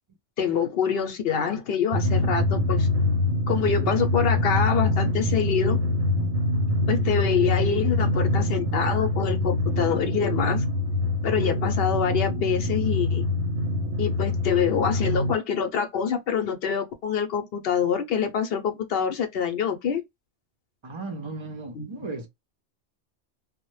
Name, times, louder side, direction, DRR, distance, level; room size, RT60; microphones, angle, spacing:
voice 1, 0.4-2.9 3.5-5.8 6.9-10.6 11.2-13.3 14.0-20.0 21.8-21.9, left 7 dB, 65° left, 0.7 m, -26 dB
Drum, 1.9-15.4, left 2 dB, 70° right, 0.8 m, -24 dB
voice 2, 20.8-22.3, right 3 dB, 45° right, 0.4 m, -35 dB
2.1 x 2.0 x 3.0 m
omnidirectional pair, 1.2 m